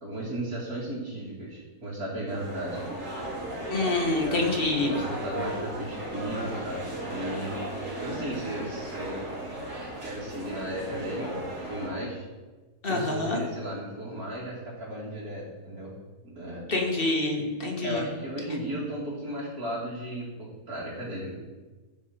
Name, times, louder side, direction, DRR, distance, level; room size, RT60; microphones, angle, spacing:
voice 1, 0.0-2.9 4.2-7.6 8.0-9.3 10.0-12.2 12.9-15.9 16.2-16.6 17.4-17.5 17.8-21.3, right 1 dB, 75° right, -9 dB, 2.8 m, -35 dB
sound 1, 2.3-11.9, right 1 dB, 55° right, 2.9 m, -36 dB
voice 2, 3.7-4.9 12.8-13.4 16.7-18.0, left 2 dB, 40° left, 0 dB, 1.7 m, -26 dB
15.5 x 5.3 x 4.3 m, 1.3 s
omnidirectional pair, 1.6 m